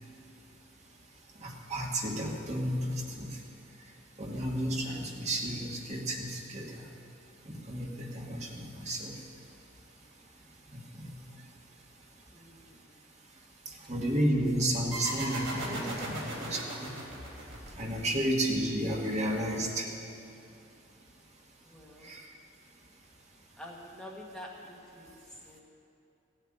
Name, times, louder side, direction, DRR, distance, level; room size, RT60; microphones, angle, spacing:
voice 1, 1.4-3.4 4.2-6.8 7.4-9.1 10.7-11.1 13.9-16.9 17.8-19.9 22.0-22.2, right 1 dB, 35° right, -1 dB, 1.7 m, -32 dB
voice 2, 12.3-13.2 18.0-18.1 21.6-22.1 23.6-25.6, left 1 dB, 5° left, -3 dB, 1.3 m, -48 dB
sound 1, 14.9-18.2, right 1 dB, 65° right, 3.5 m, -38 dB
15.5 x 7.9 x 8.7 m, 2.8 s
head